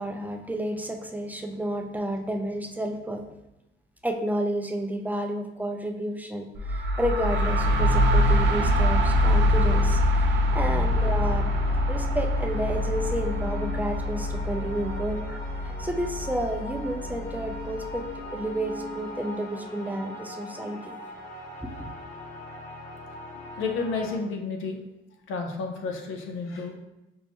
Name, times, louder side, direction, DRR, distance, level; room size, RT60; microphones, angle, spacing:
voice 1, 0.0-3.3 4.0-11.5 11.9-15.4 15.6-18.0 18.3-21.0 21.6-21.9, right 1 dB, 10° right, 2 dB, 0.4 m, -31 dB
sound 1, 6.5-18.2, left 1 dB, 65° right, 0.5 m, -24 dB
sound 2, 10.9-24.2, left 1 dB, 40° left, 0.9 m, -40 dB
voice 2, 23.3-24.8 25.3-26.8, left 4 dB, 90° left, 3 dB, 0.6 m, -31 dB
5.4 x 2.1 x 2.9 m, 0.95 s
cardioid pair, 90°, 20 cm